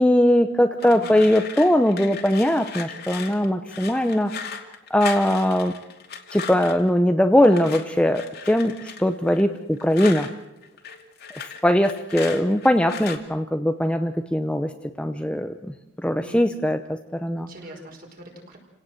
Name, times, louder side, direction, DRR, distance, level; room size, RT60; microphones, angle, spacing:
voice 1, 0.0-4.6 4.9-5.7 6.3-10.3 11.4-14.7 15.0-15.5 16.0-17.5, left 1 dB, 5° left, 7 dB, 0.8 m, -20 dB
sound 1, 0.8-6.9 7.4-10.3 10.6-13.2, left 6 dB, 50° left, 2.6 m, -37 dB
voice 2, 0.8-1.2 16.2-16.6 17.3-18.6, right 1 dB, 40° right, 2 dB, 5.1 m, -42 dB
28.5 x 17.5 x 7.9 m, 0.91 s
head